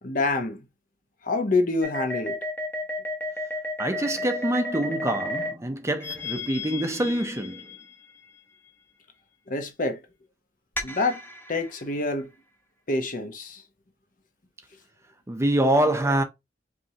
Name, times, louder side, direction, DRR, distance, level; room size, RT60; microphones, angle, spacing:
voice 1, 0.0-0.6 1.2-2.4 9.5-10.0 10.8-11.2 11.5-12.3 12.9-13.6, left 3 dB, 50° left, 0.9 m, -26 dB
sound 1, 1.8-5.5 6.0-8.2 10.8-11.8, left 1 dB, 10° left, 0.9 m, -32 dB
voice 2, 3.8-7.7 15.3-16.2, right 1 dB, 15° right, 0.6 m, -25 dB
5.2 x 3.1 x 2.8 m
head